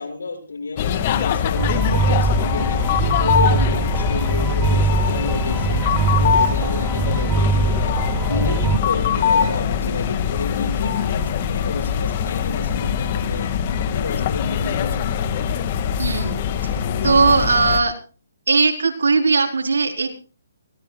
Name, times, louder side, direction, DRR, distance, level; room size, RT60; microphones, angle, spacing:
voice 1, 0.0-2.8 3.2-5.8 6.2-7.9 8.3-13.5 13.8-15.2, left 4 dB, 90° left, 7 dB, 6.8 m, -30 dB
sound 1, 0.8-17.8, left 8 dB, 35° left, 2.0 m, -22 dB
sound 2, 1.6-8.8, right 4 dB, 10° right, 0.7 m, -22 dB
voice 2, 16.0-16.4 17.0-17.9 18.5-20.1, right 4 dB, 85° right, 4 dB, 4.5 m, -18 dB
24.0 x 18.0 x 2.4 m, 0.38 s
hypercardioid pair, 160°, 0 cm